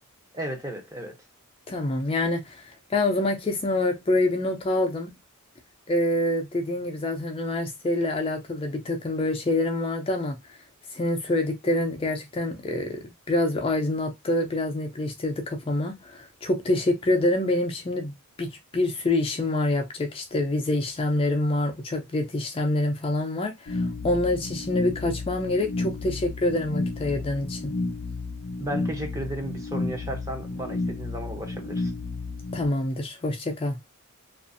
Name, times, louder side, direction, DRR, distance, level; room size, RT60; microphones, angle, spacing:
voice 1, 0.3-1.2 28.6-31.9, right 1 dB, 15° right, 0.7 m, -34 dB
voice 2, 1.7-5.1 5.9-10.4 10.9-18.1 18.4-27.7 32.5-33.8, left 2 dB, 25° left, 0.4 m, -26 dB
sound 1, 23.7-32.7, left 3 dB, 90° left, 0.6 m, -32 dB
2.5 x 2.4 x 2.4 m
head